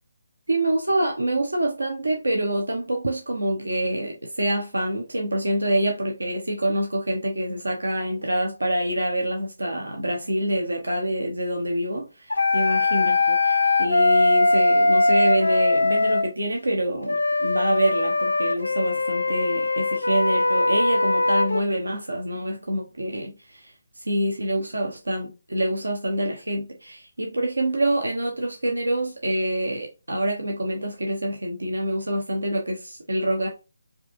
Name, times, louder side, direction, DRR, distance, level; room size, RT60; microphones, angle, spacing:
voice 1, 0.5-23.7 24.0-33.5, right 1 dB, 85° right, 0.9 m, -26 dB
sound 1, 12.3-16.3 17.1-21.6, left 2 dB, 80° left, 0.5 m, -21 dB
4.7 x 2.9 x 2.5 m
figure-of-eight pair, 150°, 0 cm